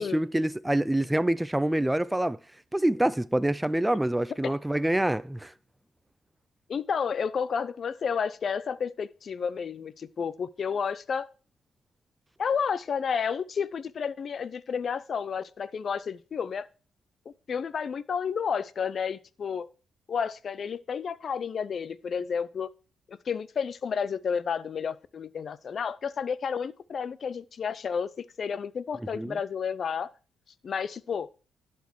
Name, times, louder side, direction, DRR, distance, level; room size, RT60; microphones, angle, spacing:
voice 1, 0.0-2.4 2.7-5.5 29.1-29.4, right 1 dB, 10° right, 0.3 m, -26 dB
voice 2, 6.7-11.3 12.4-16.7 17.5-19.7 20.1-22.7 23.1-30.1 30.6-31.3, left 6 dB, 50° left, 0.6 m, -31 dB
11.5 x 4.4 x 6.2 m
cardioid pair, 90°, 0 cm